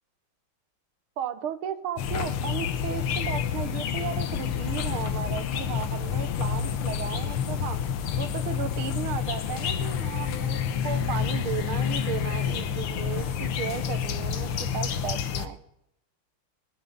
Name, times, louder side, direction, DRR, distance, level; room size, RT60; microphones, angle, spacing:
voice 1, 1.2-7.8 8.2-15.6, right 8 dB, 80° right, 11 dB, 1.9 m, -35 dB
sound 1, 2.0-15.5, left 8 dB, 85° left, 1.9 m, -29 dB
22.5 x 10.5 x 4.0 m, 0.80 s
omnidirectional pair, 2.3 m